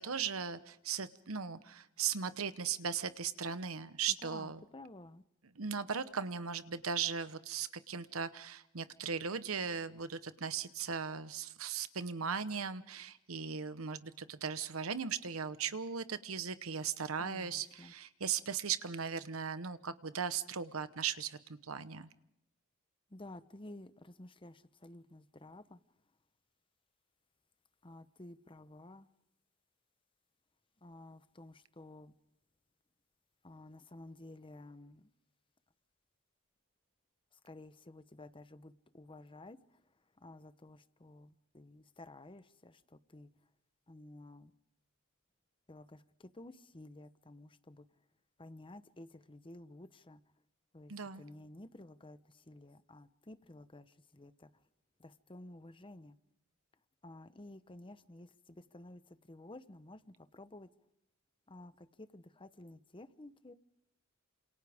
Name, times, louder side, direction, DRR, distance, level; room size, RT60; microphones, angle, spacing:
voice 1, 0.0-4.6 5.6-22.1 50.9-51.2, right 6 dB, 85° right, 1.1 m, -38 dB
voice 2, 4.1-5.2 17.2-17.9 23.1-25.8 27.8-29.1 30.8-32.1 33.4-35.1 37.3-43.3 43.9-44.5 45.7-47.9 48.4-50.2 50.7-54.6 55.0-56.2 57.0-60.7 61.5-63.5, left 1 dB, 25° left, 1.0 m, -53 dB
28.5 x 27.0 x 3.6 m
head